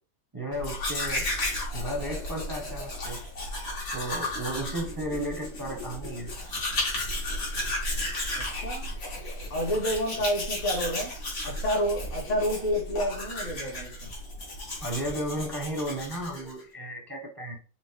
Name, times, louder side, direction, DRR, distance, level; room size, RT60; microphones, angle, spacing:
voice 1, 0.3-1.3 1.7-3.2 3.9-6.3 14.8-17.6, right 1 dB, 20° right, 0.6 m, -34 dB
Domestic sounds home sounds, 0.5-16.6, left 1 dB, 75° left, 2.3 m, -34 dB
voice 2, 8.3-8.9 9.5-11.2 11.4-14.1, equal, 55° left, 1.7 m, -29 dB
5.9 x 2.1 x 3.6 m
omnidirectional pair, 1.6 m